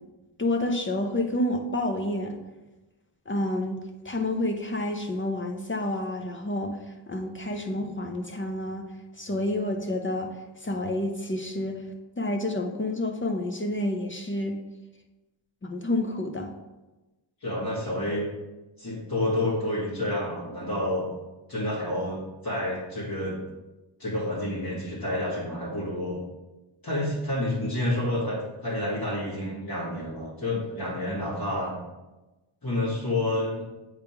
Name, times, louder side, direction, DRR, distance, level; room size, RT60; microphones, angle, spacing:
voice 1, 0.4-2.4 3.3-6.8 7.1-8.9 9.2-11.8 12.2-14.6 15.6-16.5, left 1 dB, 25° left, 3 dB, 0.5 m, -29 dB
voice 2, 17.4-18.3 18.8-21.1 21.5-23.4 24.0-26.2 26.8-31.7 32.6-33.6, left 1 dB, 45° left, -9 dB, 2.2 m, -29 dB
8.0 x 3.5 x 4.5 m, 1.1 s
wide cardioid pair, 145°, 48 cm